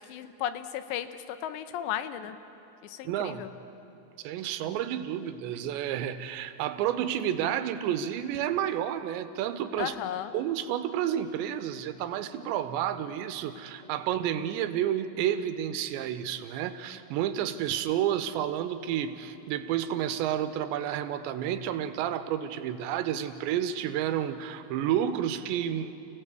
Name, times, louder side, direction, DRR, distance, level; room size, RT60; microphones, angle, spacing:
voice 1, 0.0-2.4 2.8-3.5 9.8-10.3, left 11 dB, 80° left, 11 dB, 3.0 m, -35 dB
voice 2, 3.0-3.5 4.2-10.0 10.3-25.9, right 10 dB, 80° right, 10 dB, 3.1 m, -30 dB
28.5 x 16.5 x 8.2 m, 2.9 s
omnidirectional pair, 5.1 m